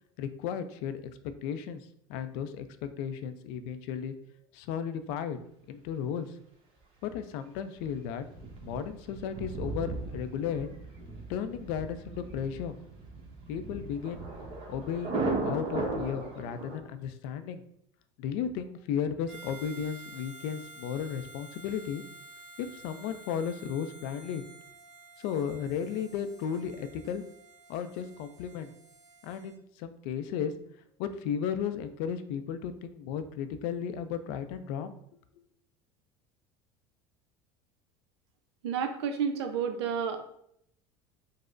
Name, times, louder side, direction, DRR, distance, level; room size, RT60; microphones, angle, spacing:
voice 1, 0.2-1.8 2.1-4.1 4.5-5.4 5.7-6.3 7.0-8.2 8.6-10.7 11.3-12.8 13.5-14.2 14.7-15.2 15.4-17.6 18.2-22.0 22.6-24.4 25.2-27.2 27.7-28.7 29.2-30.5 31.0-35.0, left 8 dB, 65° left, 10 dB, 0.4 m, -34 dB
Thunder, 7.8-16.8, right 2 dB, 40° right, 0.9 m, -36 dB
Harmonica, 19.3-29.5, right 2 dB, 5° left, 1.0 m, -51 dB
voice 2, 38.6-40.2, right 7 dB, 85° right, 7 dB, 0.5 m, -30 dB
5.0 x 2.0 x 2.5 m, 0.72 s
supercardioid pair, 100°, 14 cm